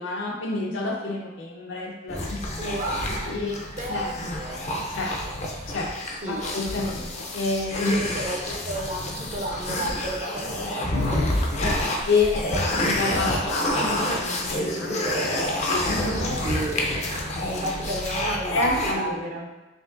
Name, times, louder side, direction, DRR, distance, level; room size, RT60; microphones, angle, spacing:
voice 1, 0.0-2.4 3.1-3.6 3.9-4.1 4.9-5.1 5.7-5.9 6.3-8.0 11.6-11.7 12.1-15.0 15.7-16.4 17.3-17.5 18.5-19.3, left 3 dB, 85° left, -1 dB, 0.8 m, -28 dB
sound 1, 2.1-18.9, left 1 dB, 35° left, 0.4 m, -28 dB
voice 2, 2.6-3.4 3.8-4.1 4.4-4.7 6.2-6.4 7.8-11.9 16.4-19.5, right 1 dB, 40° right, 0 dB, 0.5 m, -32 dB
5.1 x 2.8 x 2.5 m, 1.1 s
head